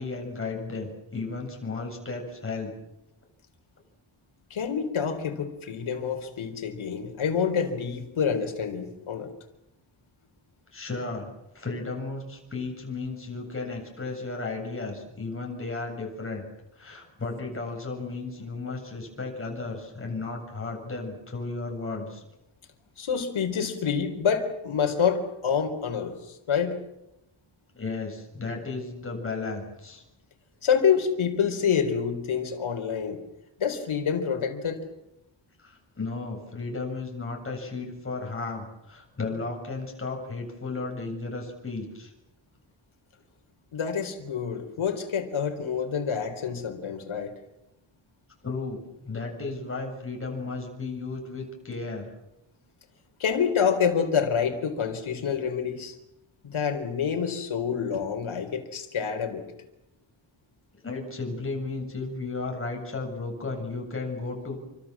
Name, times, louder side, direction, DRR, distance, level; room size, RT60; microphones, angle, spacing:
voice 1, 0.0-2.7 10.7-16.5 16.8-22.2 27.7-30.0 35.6-42.1 48.4-52.1 60.8-64.6, left 3 dB, 25° left, 1 dB, 7.7 m, -34 dB
voice 2, 4.5-9.3 23.0-26.8 30.6-33.2 33.6-34.8 43.7-47.3 53.2-55.9 56.4-59.5, left 7 dB, 70° left, 6 dB, 4.3 m, -27 dB
29.0 x 25.0 x 7.5 m, 0.90 s
wide cardioid pair, 170°, 49 cm